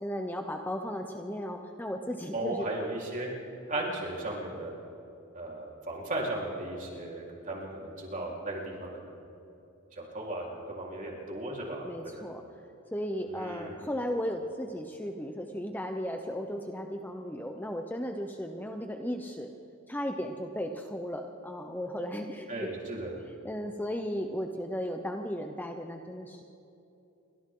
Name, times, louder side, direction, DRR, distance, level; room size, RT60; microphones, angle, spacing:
voice 1, 0.0-2.6 11.8-12.4 12.9-19.5 19.9-22.7 23.3-26.4, equal, 10° left, 4 dB, 0.8 m, -35 dB
voice 2, 2.3-3.3 3.7-4.7 5.3-9.2 10.0-12.3 13.3-13.8 22.5-23.1, right 1 dB, 40° right, -3 dB, 4.1 m, -36 dB
29.5 x 23.5 x 3.8 m, 2.8 s
head